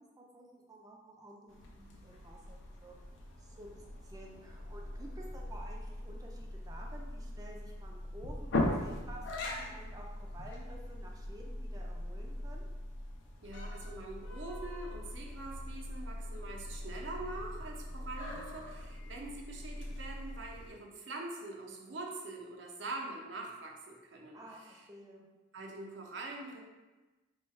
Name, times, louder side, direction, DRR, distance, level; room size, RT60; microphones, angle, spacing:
voice 1, 0.2-2.9 3.4-12.7 24.3-25.3, right 1 dB, 20° right, 0 dB, 0.4 m, -52 dB
sound 1, 1.5-20.7, left 1 dB, 70° left, 0.6 m, -41 dB
voice 2, 13.4-24.4 25.5-26.6, right 2 dB, 65° right, 0 dB, 0.6 m, -44 dB
3.1 x 2.3 x 4.3 m, 1.2 s
head